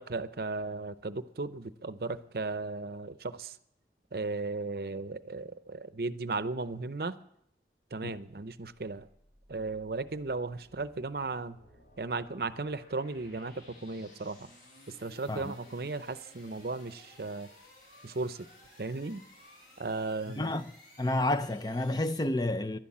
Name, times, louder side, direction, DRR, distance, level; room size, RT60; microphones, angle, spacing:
voice 1, 0.0-3.6 4.1-7.2 7.9-9.1 9.5-11.6 12.0-14.5 14.9-17.5 18.0-18.5 18.8-19.2 19.8-20.6, right 3 dB, 60° right, 0.7 m, -36 dB
sound 1, 8.7-22.2, left 1 dB, 55° left, 7.4 m, -57 dB
voice 2, 20.4-20.7 21.0-22.8, left 1 dB, 20° left, 0.5 m, -30 dB
11.5 x 11.5 x 8.6 m
head